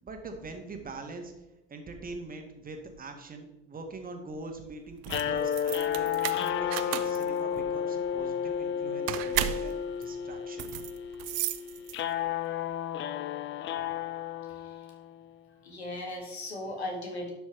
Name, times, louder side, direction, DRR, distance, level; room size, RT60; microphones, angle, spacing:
voice 1, 0.0-1.3 1.7-6.1 6.3-10.7, right 3 dB, 25° right, 4 dB, 1.6 m, -43 dB
sound 1, 4.9-12.3, right 14 dB, 50° right, 0.6 m, -35 dB
sound 2, 5.1-15.3, left 8 dB, 35° left, 0.5 m, -32 dB
voice 2, 14.4-14.9 15.6-17.3, left 1 dB, 85° left, 2 dB, 1.6 m, -38 dB
11.5 x 6.1 x 3.2 m, 0.94 s
figure-of-eight pair, 60°, 32 cm